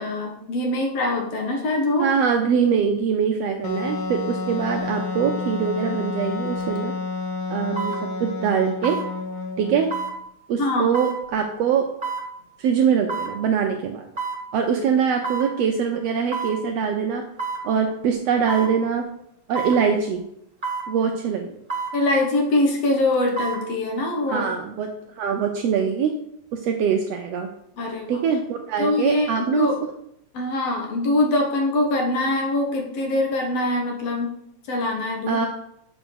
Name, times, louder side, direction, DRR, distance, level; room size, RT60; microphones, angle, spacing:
voice 1, 0.0-2.1 10.6-10.9 21.9-24.5 27.8-28.2 28.8-29.8 30.3-34.4 34.7-35.4, left 2 dB, 60° left, 1 dB, 2.2 m, -23 dB
voice 2, 2.0-6.9 7.5-7.9 8.2-9.0 9.6-9.9 10.5-11.9 12.6-14.1 14.5-17.2 17.6-19.1 19.5-20.2 20.9-21.5 24.3-24.9 25.2-26.1 26.5-27.5 28.1-29.7 35.3-35.5, right 7 dB, 75° right, 4 dB, 1.5 m, -23 dB
Wind instrument woodwind instrument, 3.6-10.1, left 4 dB, 90° left, 1.1 m, -30 dB
sound 1, 6.6-6.8 7.8-8.0 8.8-9.1 9.9-10.2 10.9-11.2 12.0-12.3 13.1-13.3 14.2-14.4 15.2-15.5 16.3-16.6 17.4-17.6 18.5-18.7 19.5-19.8 20.6-20.9 21.7-22.0 23.1-23.6 24.0-24.1, right 4 dB, 45° right, 0.6 m, -28 dB
6.9 x 5.1 x 6.4 m, 0.76 s
omnidirectional pair, 3.4 m